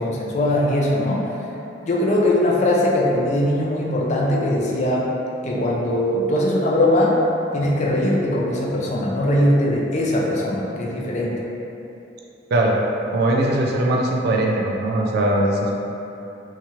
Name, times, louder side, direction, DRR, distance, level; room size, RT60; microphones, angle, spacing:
voice 1, 0.0-1.4 1.9-5.1 5.4-7.2 7.5-11.4, left 1 dB, 40° left, -3 dB, 0.4 m, -20 dB
voice 2, 13.1-15.7, right 1 dB, 60° right, -1 dB, 0.3 m, -20 dB
2.8 x 2.4 x 2.8 m, 2.9 s
head